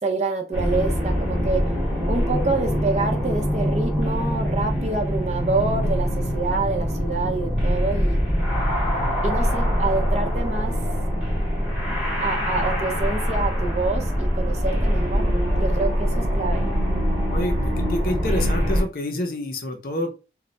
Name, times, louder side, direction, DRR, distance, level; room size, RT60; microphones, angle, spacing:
voice 1, 0.0-1.6 2.1-8.2 9.2-10.8 12.2-15.3 15.6-16.7, right 3 dB, 40° right, 3 dB, 0.5 m, -27 dB
sound 1, 0.5-18.8, equal, 5° right, 0.9 m, -23 dB
voice 2, 17.3-20.1, left 1 dB, 50° left, 5 dB, 0.6 m, -28 dB
2.2 x 2.1 x 3.8 m, 0.32 s
head